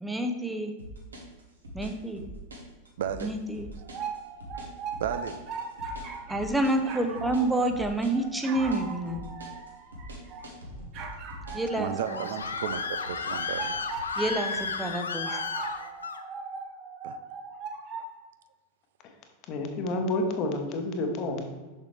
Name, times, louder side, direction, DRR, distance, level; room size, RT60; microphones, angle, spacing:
voice 1, 0.0-0.7 1.7-2.2 3.2-3.7 6.3-9.3 11.5-12.2 14.2-15.3, right 1 dB, 5° right, 5 dB, 0.6 m, -28 dB
sound 1, 0.8-11.7, equal, 75° right, 1.3 m, -43 dB
voice 2, 3.0-3.3 5.0-5.4 11.8-13.8 15.0-15.1 17.0-17.2, right 9 dB, 60° right, 11 dB, 0.3 m, -34 dB
sound 2, 3.8-6.5 6.8-10.5 10.9-14.7 15.1-18.1, right 4 dB, 40° right, 1.0 m, -39 dB
Screaming, 11.7-16.2, left 5 dB, 70° left, 0.5 m, -33 dB
voice 3, 19.5-21.4, left 2 dB, 40° left, 4 dB, 1.0 m, -29 dB
6.6 x 6.3 x 3.2 m, 1.3 s
figure-of-eight pair, 90°, 0 cm